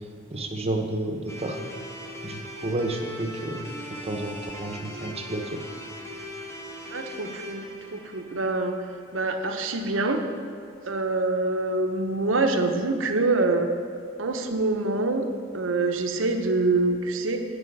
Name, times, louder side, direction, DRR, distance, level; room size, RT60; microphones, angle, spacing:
voice 1, 0.3-1.6 2.2-3.7 4.0-5.6, right 2 dB, 30° right, 4 dB, 0.9 m, -31 dB
sound 1, 1.3-9.4, equal, 15° left, 1.0 m, -39 dB
voice 2, 6.9-8.8 9.1-10.2 10.9-13.7 14.2-15.3 15.5-17.4, right 2 dB, 75° right, 5 dB, 0.8 m, -25 dB
9.9 x 5.0 x 7.9 m, 2.4 s
head